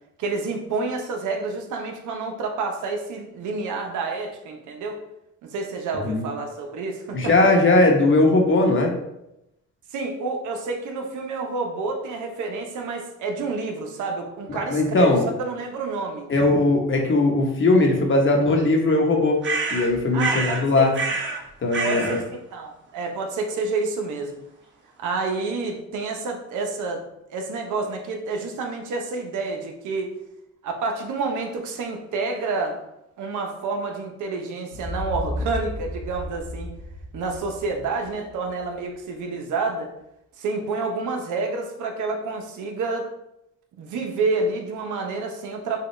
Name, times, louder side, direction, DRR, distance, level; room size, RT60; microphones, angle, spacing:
voice 1, 0.2-5.0 5.4-7.3 9.9-15.1 15.4-16.3 20.1-20.9 21.8-22.2 22.5-24.4 25.0-27.0 27.3-30.1 30.6-32.8 33.2-36.7 37.1-39.9 40.4-43.1 43.8-45.9, right 3 dB, 75° right, 3 dB, 0.8 m, -29 dB
voice 2, 7.1-9.0 14.7-15.3 16.3-19.4 19.7-20.9 21.6-22.2, left 2 dB, 40° left, 1 dB, 1.0 m, -19 dB
sound 1, 19.4-20.6 20.9-21.4 21.7-22.2, right 4 dB, 40° right, 1.2 m, -27 dB
sound 2, 34.7-38.6, left 1 dB, 25° left, 0.6 m, -33 dB
5.7 x 2.3 x 3.2 m, 0.84 s
cardioid pair, 90°, 30 cm